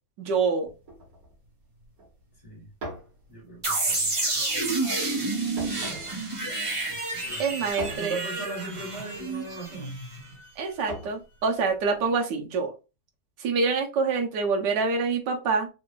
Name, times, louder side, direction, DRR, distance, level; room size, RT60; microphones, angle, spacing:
voice 1, 0.2-0.7 7.4-8.2 10.6-12.7 13.4-15.7, right 4 dB, 80° right, 1.5 m, -26 dB
sound 1, 0.7-12.0, right 1 dB, 55° right, 1.8 m, -44 dB
voice 2, 3.3-4.8 6.9-9.9, right 2 dB, 20° left, 1.2 m, -41 dB
sound 2, 3.6-10.4, right 2 dB, 25° right, 0.8 m, -29 dB
3.7 x 2.3 x 3.7 m
omnidirectional pair, 1.8 m